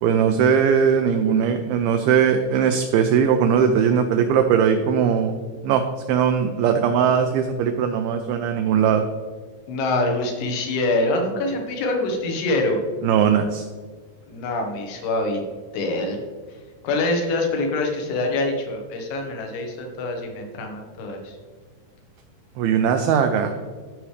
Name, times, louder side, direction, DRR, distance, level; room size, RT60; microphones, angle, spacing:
voice 1, 0.0-5.4 5.6-9.1 13.0-13.7 22.6-23.5, right 7 dB, 85° right, 6 dB, 2.1 m, -19 dB
voice 2, 9.7-12.8 14.3-15.4 15.7-16.2 16.8-21.4, left 2 dB, 75° left, 3 dB, 3.0 m, -25 dB
14.0 x 5.0 x 3.2 m, 1.5 s
omnidirectional pair, 4.9 m